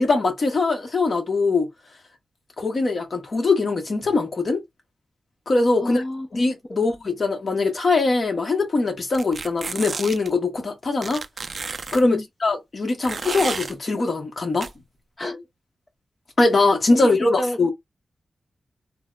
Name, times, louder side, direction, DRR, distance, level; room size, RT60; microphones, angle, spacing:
voice 1, 0.0-1.7 2.6-4.6 5.5-6.0 6.3-11.2 11.9-14.7 16.4-17.7, left 3 dB, 50° left, 1.0 m, -22 dB
voice 2, 5.8-6.3 6.7-6.8 12.0-12.2 15.2-15.4 16.9-17.7, left 1 dB, 30° left, 0.4 m, -29 dB
sound 1, 9.1-10.3 11.0-12.0 13.0-13.7 14.6-14.7, right 4 dB, 50° right, 0.3 m, -31 dB
3.8 x 2.0 x 2.2 m
wide cardioid pair, 100°, 0 cm